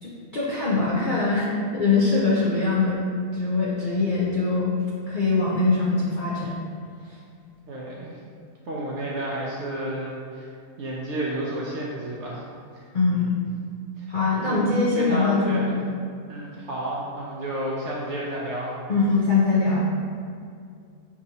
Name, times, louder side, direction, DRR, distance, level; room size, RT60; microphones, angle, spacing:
voice 1, 0.0-3.0 3.3-6.6 12.9-13.4 14.1-15.8 18.9-19.9, left 3 dB, 70° left, -7 dB, 0.4 m, -22 dB
voice 2, 7.6-8.2 8.7-10.5 10.8-12.5 12.7-13.3 14.0-14.1 14.4-15.7 16.3-18.7, right 1 dB, 65° right, -5 dB, 0.7 m, -31 dB
5.8 x 2.9 x 2.7 m, 2.3 s
omnidirectional pair, 1.7 m